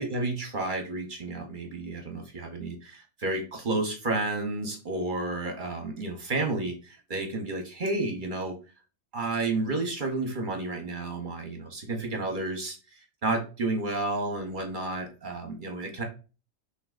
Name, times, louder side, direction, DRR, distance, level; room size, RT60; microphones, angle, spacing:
voice 1, 0.0-8.6 9.1-12.8 13.2-16.0, right 2 dB, 45° right, 4 dB, 0.8 m, -31 dB
5.8 x 3.1 x 2.4 m, 0.33 s
omnidirectional pair, 1.4 m